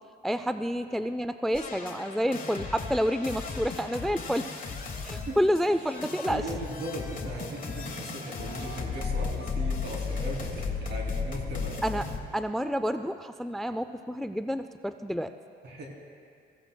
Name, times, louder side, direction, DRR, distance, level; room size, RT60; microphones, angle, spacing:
voice 1, 0.2-4.5 5.0-6.4 11.8-12.1 12.3-15.3, equal, ahead, 10 dB, 0.3 m, -29 dB
sound 1, 1.5-12.2, left 5 dB, 45° left, 1.4 m, -35 dB
Wind, 4.6-10.5, right 1 dB, 45° right, 1.6 m, -50 dB
voice 2, 6.2-11.8 15.6-15.9, right 1 dB, 60° right, -1 dB, 3.0 m, -38 dB
20.5 x 15.5 x 2.2 m, 2.3 s
cardioid pair, 90°, 20 cm